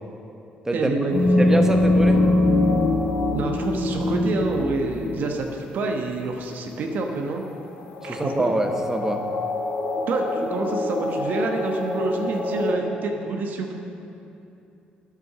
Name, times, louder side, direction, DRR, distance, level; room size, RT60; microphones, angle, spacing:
voice 1, 0.7-1.5 3.3-7.4 8.0-8.5 10.1-13.7, right 3 dB, 65° right, 2 dB, 1.1 m, -27 dB
sound 1, 1.1-5.4 7.4-7.5 7.9-12.7, left 2 dB, 80° left, 2.0 m, -23 dB
voice 2, 1.4-2.2 8.0-9.2, right 1 dB, 15° right, 5 dB, 1.1 m, -24 dB
9.6 x 7.7 x 6.7 m, 2.8 s
cardioid pair, 80°, 3 cm